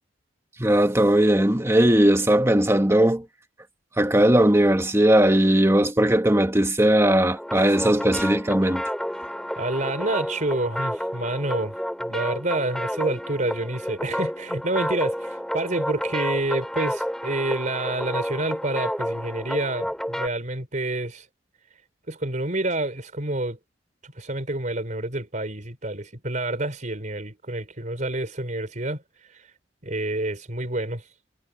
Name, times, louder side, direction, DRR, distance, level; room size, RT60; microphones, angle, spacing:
voice 1, 0.6-3.2 4.0-8.8, right 1 dB, 15° right, 1.8 m, -19 dB
sound 1, 7.3-20.3, equal, 5° left, 5.9 m, -30 dB
voice 2, 9.6-11.7 12.0-21.2 22.1-23.6 24.0-29.0 29.3-29.4 29.8-31.0, right 2 dB, 45° right, 4.5 m, -28 dB
head